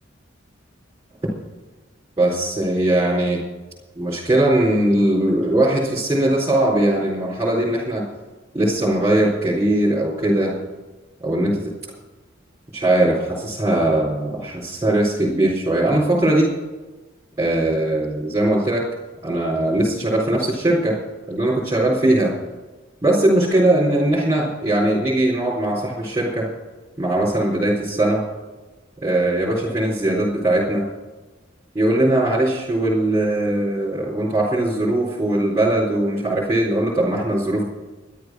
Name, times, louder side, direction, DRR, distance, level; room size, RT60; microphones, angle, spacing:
voice 1, 2.2-3.4 4.0-8.0 8.5-10.6 11.2-11.6 12.7-16.5 17.4-18.8 19.2-21.0 21.3-22.3 23.0-26.5 27.0-28.2 29.0-30.9 31.7-37.6, right 1 dB, 15° right, -8 dB, 4.0 m, -20 dB
13.0 x 11.5 x 6.2 m, 1.2 s
head